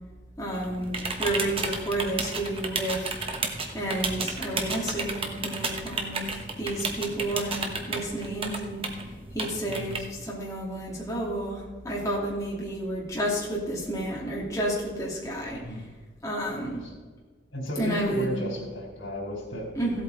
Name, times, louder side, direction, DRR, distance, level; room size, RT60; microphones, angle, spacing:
voice 1, 0.4-3.1 3.7-9.0 9.3-15.8 16.2-16.8 17.8-18.4 19.7-20.0, right 1 dB, 15° left, -5 dB, 2.6 m, -31 dB
sound 1, 0.5-10.0, right 3 dB, 30° right, 1.2 m, -33 dB
voice 2, 17.5-19.7, left 1 dB, 90° left, 0 dB, 3.8 m, -33 dB
16.0 x 8.3 x 4.1 m, 1.4 s
head